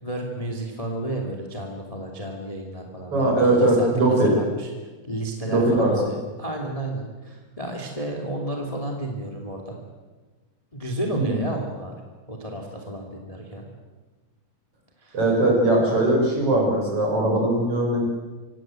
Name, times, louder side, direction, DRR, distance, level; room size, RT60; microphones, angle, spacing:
voice 1, 0.0-4.7 5.0-9.8 10.7-12.0 12.3-13.7 15.0-15.2, right 1 dB, 10° left, 2 dB, 2.2 m, -32 dB
voice 2, 3.1-4.3 5.5-5.9 11.1-11.4 15.1-18.0, right 1 dB, 40° right, -1 dB, 7.3 m, -20 dB
26.0 x 17.0 x 7.8 m, 1.3 s
omnidirectional pair, 4.0 m